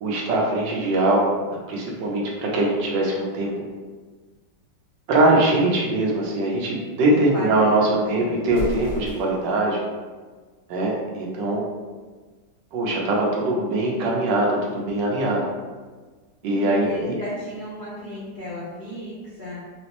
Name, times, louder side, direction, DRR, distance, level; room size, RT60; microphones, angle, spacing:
voice 1, 0.0-1.3 1.7-3.5 5.1-9.8 10.7-11.6 12.7-15.4 16.4-17.1, right 2 dB, 85° right, -3 dB, 1.4 m, -22 dB
voice 2, 7.1-7.6 8.0-8.4 16.4-19.6, equal, 75° left, -9 dB, 0.4 m, -34 dB
Explosion, 8.4-9.6, right 1 dB, 40° left, 1.5 m, -33 dB
4.0 x 2.1 x 2.9 m, 1.4 s
omnidirectional pair, 1.9 m